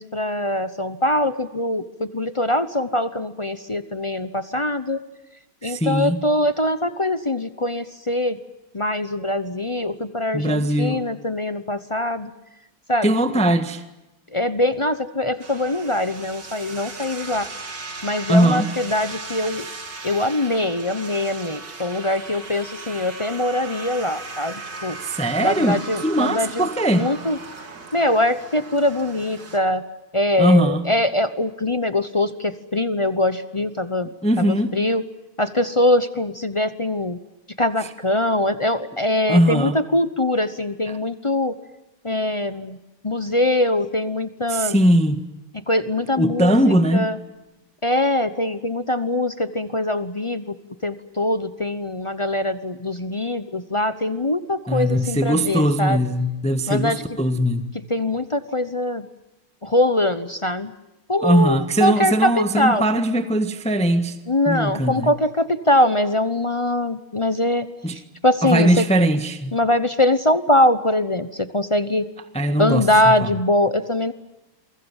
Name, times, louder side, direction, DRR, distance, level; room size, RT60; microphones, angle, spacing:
voice 1, 0.0-5.0 5.6-8.4 8.7-12.3 12.9-13.1 14.3-17.5 18.0-19.6 20.0-25.0 25.4-27.4 27.9-29.8 30.1-34.1 34.5-35.0 35.4-37.2 37.6-41.6 42.0-42.8 43.0-44.8 45.7-46.6 46.9-47.1 47.8-50.5 50.8-56.0 56.7-57.0 57.9-59.0 59.6-60.7 61.1-62.3 62.6-62.8 64.3-67.7 68.2-68.8 69.5-72.1 72.6-74.1, left 1 dB, 45° left, 0.4 m, -22 dB
voice 2, 5.6-6.2 10.3-11.0 13.0-13.8 18.3-18.7 25.1-27.1 30.4-30.8 34.2-34.8 37.8-37.9 39.3-39.8 40.9-41.0 44.5-45.2 46.1-47.1 54.7-57.7 61.2-64.2 64.4-65.1 67.8-68.0 68.4-69.5 72.3-73.3, right 1 dB, 5° left, 1.2 m, -20 dB
sound 1, 15.4-29.6, right 3 dB, 55° right, 3.5 m, -37 dB
28.5 x 24.0 x 7.2 m
omnidirectional pair, 2.3 m